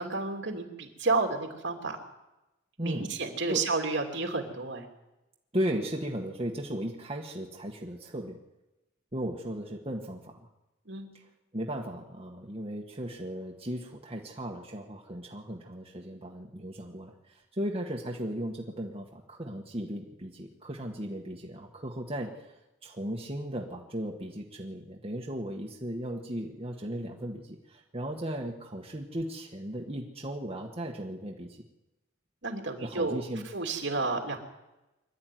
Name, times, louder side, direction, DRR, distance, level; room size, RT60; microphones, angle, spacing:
voice 1, 0.0-2.0 2.8-4.9 10.9-11.1 32.4-33.2 33.5-34.4, right 3 dB, 65° right, 3 dB, 3.0 m, -31 dB
voice 2, 2.8-3.1 3.5-3.6 5.5-8.4 9.1-10.4 11.1-11.2 11.5-22.5 22.8-31.6 32.8-33.5 34.0-34.1, right 1 dB, 30° right, 0 dB, 1.6 m, -36 dB
24.5 x 12.0 x 9.4 m, 0.99 s
head